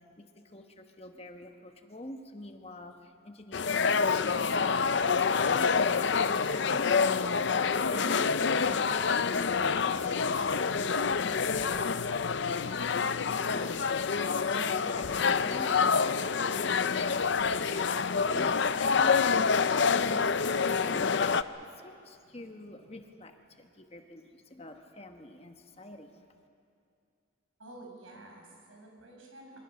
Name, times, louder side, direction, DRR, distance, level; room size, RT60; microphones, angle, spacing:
voice 1, 0.0-11.2 11.5-26.2, left 1 dB, 30° left, 5 dB, 1.2 m, -47 dB
sound 1, 3.5-21.4, left 5 dB, 60° left, 0.6 m, -27 dB
voice 2, 27.6-29.6, right 1 dB, 75° right, 0 dB, 5.7 m, -50 dB
25.0 x 24.5 x 6.5 m, 2.4 s
head